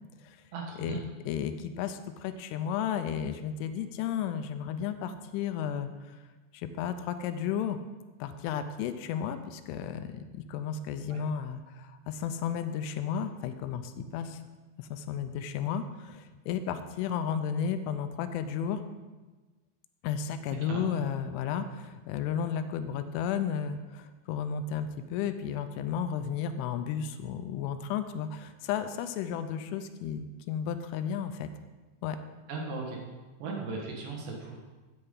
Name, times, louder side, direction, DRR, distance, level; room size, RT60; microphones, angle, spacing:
voice 1, 0.5-1.0 11.1-11.2 20.5-20.9 32.5-33.0 33.4-34.6, right 3 dB, 65° right, 0 dB, 3.4 m, -37 dB
voice 2, 1.3-6.2 6.5-7.8 8.2-14.4 14.8-18.8 20.0-31.5 32.0-32.2, left 8 dB, 85° left, 9 dB, 3.1 m, -33 dB
13.5 x 8.9 x 3.9 m, 1.2 s
omnidirectional pair, 5.7 m